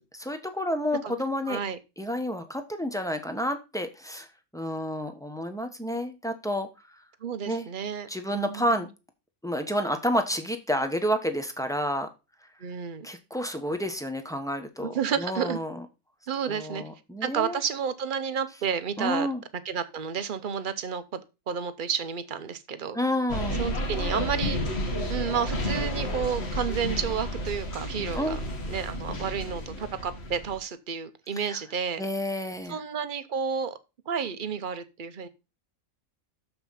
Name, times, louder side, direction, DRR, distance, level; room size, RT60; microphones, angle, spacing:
voice 1, 0.2-1.6 2.0-4.3 4.5-6.7 7.4-7.7 8.1-8.9 9.4-12.1 13.0-15.8 16.5-17.6 19.0-19.4 22.9-23.6 28.1-28.4 31.4-31.6 32.0-32.8, equal, 5° left, 7 dB, 0.9 m, -30 dB
voice 2, 1.5-1.8 7.2-8.8 12.6-13.1 14.8-15.6 16.3-16.8 17.2-19.3 19.6-21.2 21.5-23.0 23.6-24.6 25.1-28.4 28.7-32.0 32.7-33.8 34.1-35.3, right 7 dB, 45° right, 11 dB, 0.8 m, -31 dB
sound 1, 23.3-30.6, left 1 dB, 50° left, 1.8 m, -31 dB
6.8 x 5.8 x 5.6 m, 0.28 s
omnidirectional pair, 1.5 m